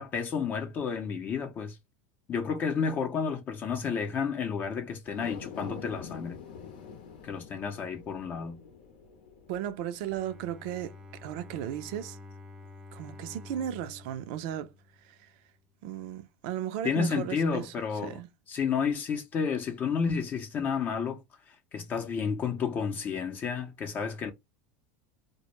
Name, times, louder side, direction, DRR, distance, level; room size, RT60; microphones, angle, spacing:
voice 1, 0.0-1.8 2.3-6.4 7.2-8.6 16.8-18.2 18.5-24.3, left 6 dB, 35° left, 0.5 m, -31 dB
sound 1, 5.0-11.6 12.0-12.1, left 6 dB, 75° left, 0.7 m, -46 dB
voice 2, 9.5-11.0 11.2-12.2 12.9-14.7 15.0-15.3 15.8-17.7 18.0-18.3, right 11 dB, 65° right, 0.4 m, -35 dB
Bowed string instrument, 10.2-15.4, left 3 dB, 15° right, 0.5 m, -49 dB
2.1 x 2.0 x 3.0 m
supercardioid pair, 110°, 5 cm